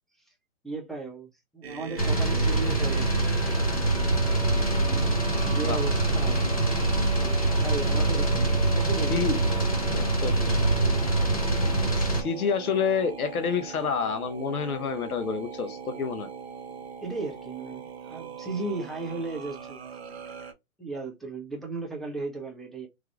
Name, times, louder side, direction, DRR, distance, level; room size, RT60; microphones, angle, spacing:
voice 1, 0.6-3.6 4.8-6.4 7.6-10.2 17.0-19.8 20.8-22.9, right 3 dB, ahead, 0.3 m, -36 dB
sound 1, 1.6-20.5, right 5 dB, 45° right, 0.7 m, -40 dB
sound 2, 2.0-12.2, right 2 dB, 25° left, 0.6 m, -24 dB
voice 2, 9.9-10.3 12.0-16.3, left 6 dB, 80° left, 0.9 m, -28 dB
3.4 x 3.2 x 2.3 m
hypercardioid pair, 170°, 43 cm